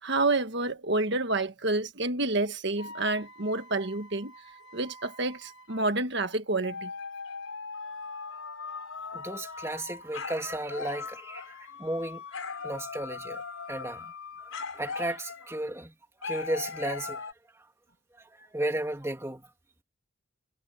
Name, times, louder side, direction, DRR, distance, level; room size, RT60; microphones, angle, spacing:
voice 1, 0.0-4.3 4.7-6.9, right 2 dB, 55° right, 1.6 m, -29 dB
sound 1, 2.8-5.9 6.6-15.6 16.2-17.3, left 4 dB, 80° left, 5.1 m, -40 dB
voice 2, 9.1-12.2 12.6-13.4 13.7-14.1 14.4-15.9 16.2-17.2 17.6-17.7 18.2-19.5, right 1 dB, 15° right, 2.6 m, -34 dB
head